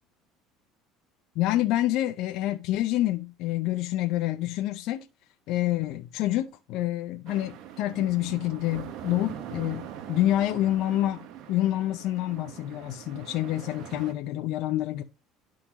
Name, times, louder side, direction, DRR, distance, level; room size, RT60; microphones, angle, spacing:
voice 1, 1.4-5.1 5.5-15.0, left 14 dB, 65° left, 0.5 m, -27 dB
sound 1, 7.3-14.1, right 10 dB, 65° right, 0.9 m, -42 dB
11.0 x 3.8 x 3.0 m
supercardioid pair, 115°, 0 cm